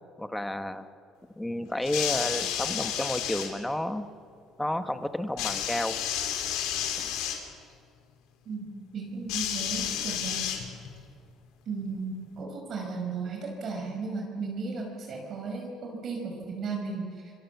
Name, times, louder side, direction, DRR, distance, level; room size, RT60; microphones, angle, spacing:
voice 1, 0.2-0.9 1.4-4.1 4.6-6.0 7.0-7.1, left 1 dB, 5° left, 9 dB, 1.2 m, -31 dB
sound 1, 1.8-3.5 5.4-7.4 9.3-11.0 12.0-12.1, left 10 dB, 90° left, 3.4 m, -31 dB
voice 2, 8.5-10.6 11.7-17.3, right 4 dB, 50° right, 0 dB, 5.4 m, -35 dB
26.5 x 23.0 x 7.2 m, 2.4 s
cardioid pair, 125°, 0 cm